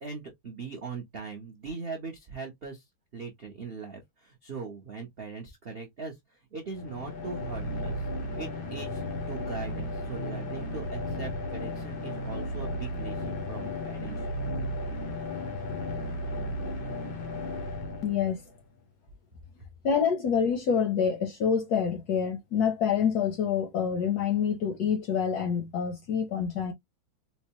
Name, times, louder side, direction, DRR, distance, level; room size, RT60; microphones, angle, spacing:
voice 1, 0.0-2.9 3.1-8.1 8.4-14.3, right 4 dB, 70° right, 0.5 m, -40 dB
sound 1, 6.7-18.6, left 1 dB, 85° left, 0.4 m, -34 dB
voice 2, 18.0-18.4 19.8-26.7, left 7 dB, 70° left, 0.9 m, -27 dB
4.4 x 2.1 x 2.8 m
omnidirectional pair, 2.2 m